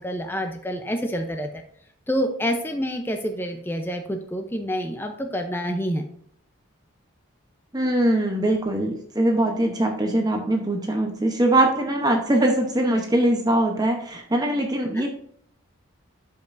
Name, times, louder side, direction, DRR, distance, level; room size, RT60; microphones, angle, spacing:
voice 1, 0.0-1.5 2.1-6.0 14.9-15.1, equal, 10° left, 4 dB, 0.6 m, -27 dB
voice 2, 7.7-15.1, right 1 dB, 20° right, 2 dB, 0.8 m, -22 dB
12.0 x 5.4 x 2.6 m, 0.66 s
head